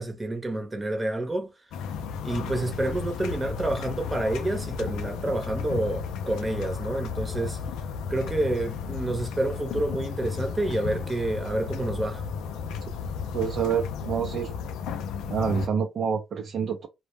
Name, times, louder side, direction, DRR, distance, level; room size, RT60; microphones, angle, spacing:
voice 1, 0.0-1.5 2.2-7.6 8.1-12.2, right 1 dB, 20° right, 0.8 m, -29 dB
sound 1, 1.7-15.7, left 6 dB, 90° left, 0.3 m, -33 dB
voice 2, 13.3-14.5 15.3-16.9, right 7 dB, 55° right, 0.4 m, -27 dB
2.1 x 2.0 x 3.2 m
cardioid pair, 90°, 0 cm